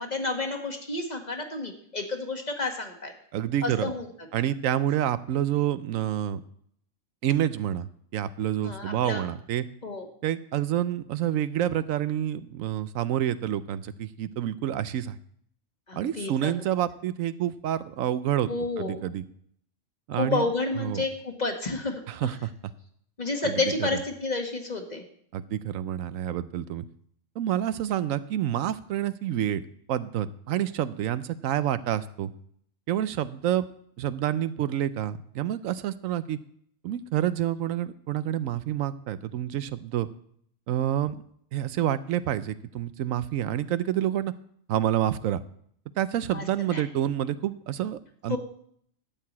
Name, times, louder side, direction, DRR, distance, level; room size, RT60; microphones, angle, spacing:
voice 1, 0.0-3.1 3.6-4.0 8.6-9.2 9.8-10.1 15.9-16.5 18.5-19.0 20.2-22.3 23.2-25.0 46.3-46.4 46.7-46.8 48.3-48.4, left 3 dB, 35° left, 4 dB, 1.4 m, -30 dB
voice 2, 3.3-3.9 4.3-6.4 7.2-9.7 10.2-15.2 15.9-18.5 18.8-19.2 20.1-20.5 20.8-21.0 22.1-22.5 23.4-24.0 25.3-26.9 27.4-29.6 29.9-32.3 32.9-33.7 34.0-36.4 36.8-40.1 40.7-41.2 41.5-44.3 44.7-45.4 46.0-48.4, right 11 dB, 80° right, 14 dB, 1.0 m, -28 dB
12.0 x 4.7 x 8.5 m, 0.65 s
omnidirectional pair, 1.4 m